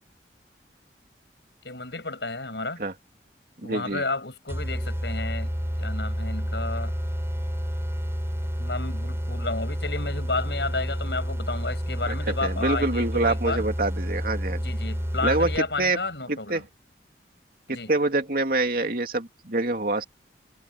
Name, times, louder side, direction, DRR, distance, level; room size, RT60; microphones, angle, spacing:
voice 1, 1.6-2.8 3.6-5.5 5.8-7.0 8.6-13.6 14.6-16.7 17.7-17.9, left 3 dB, 75° left, 7.7 m, -32 dB
voice 2, 3.6-4.0 12.1-12.2 12.4-14.6 15.2-15.5 15.8-16.0 16.3-16.6 17.7-20.0, right 2 dB, 55° right, 2.7 m, -25 dB
sound 1, 4.5-15.9, equal, 15° right, 4.3 m, -30 dB
head